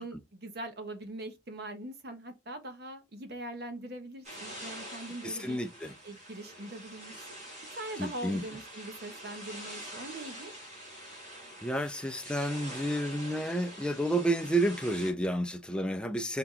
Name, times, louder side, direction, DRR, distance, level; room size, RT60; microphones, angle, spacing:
voice 1, 0.0-5.6 6.0-7.2 7.8-10.5, right 1 dB, 65° right, 1.1 m, -42 dB
sound 1, 4.2-15.1, right 1 dB, 40° right, 2.9 m, -45 dB
voice 2, 5.2-5.9 8.0-8.4 11.6-16.4, right 1 dB, 5° left, 0.4 m, -30 dB
4.2 x 2.9 x 3.8 m
head